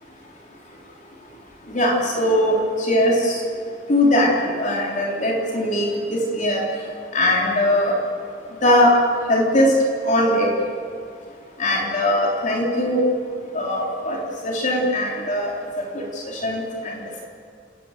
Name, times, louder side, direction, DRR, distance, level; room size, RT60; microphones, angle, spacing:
voice 1, 1.7-3.4 3.9-6.6 7.1-7.9 8.6-8.9 9.3-9.7 10.0-10.5 11.6-13.0 13.5-14.2 14.4-15.5 16.4-16.6, left 1 dB, 40° left, -1 dB, 3.6 m, -20 dB
29.5 x 18.5 x 6.7 m, 2.3 s
head